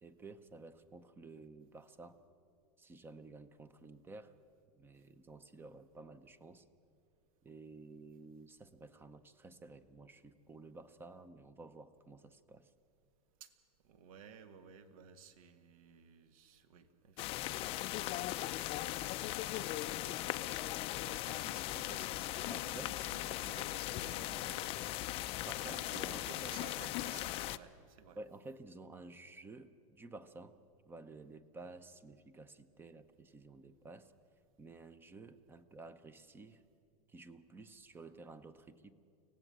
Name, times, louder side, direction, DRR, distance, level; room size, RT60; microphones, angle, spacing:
voice 1, 0.0-2.2 2.8-4.4 4.7-6.7 7.4-12.7 22.5-22.9 24.9-25.1 25.4-26.3 28.1-30.5 30.9-34.1 34.6-36.6 37.1-39.0, right 3 dB, 10° right, 14 dB, 0.7 m, -53 dB
voice 2, 13.8-28.2, right 7 dB, 65° right, 10 dB, 1.7 m, -56 dB
sound 1, 17.2-27.6, left 16 dB, 30° left, 0.5 m, -39 dB
25.0 x 17.5 x 7.5 m, 2.4 s
supercardioid pair, 150°, 19 cm